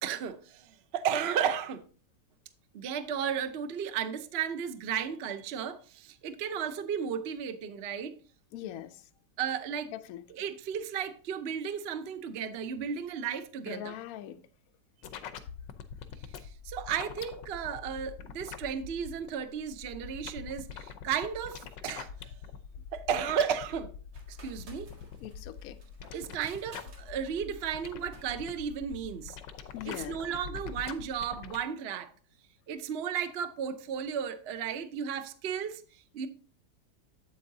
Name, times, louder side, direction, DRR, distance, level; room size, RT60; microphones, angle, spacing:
voice 1, 0.0-1.8 2.7-8.2 8.6-8.7 9.4-9.9 10.3-14.0 16.4-22.3 22.9-23.9 24.3-24.9 26.1-29.4 29.8-32.1 32.7-36.3, right 8 dB, 55° right, 0.7 m, -34 dB
voice 2, 8.5-9.0 9.9-10.2 13.6-14.4 25.2-25.8 29.7-30.2, left 12 dB, 70° left, 0.9 m, -41 dB
sound 1, 15.0-31.6, left 7 dB, 90° left, 1.4 m, -44 dB
sound 2, 24.1-30.4, right 2 dB, 80° right, 2.5 m, -57 dB
8.5 x 8.0 x 2.7 m
omnidirectional pair, 1.9 m